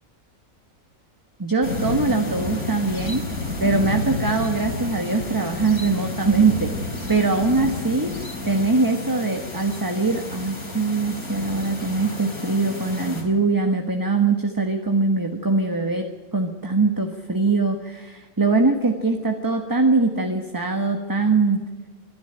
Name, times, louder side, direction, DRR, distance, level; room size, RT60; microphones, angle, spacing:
voice 1, 1.4-3.2 3.6-6.7 7.1-8.1 8.4-16.1 16.3-21.6, right 3 dB, 15° right, 5 dB, 1.3 m, -22 dB
sound 1, 1.6-13.2, left 2 dB, 85° left, 5.0 m, -30 dB
26.0 x 11.5 x 9.0 m, 1.4 s
omnidirectional pair, 1.5 m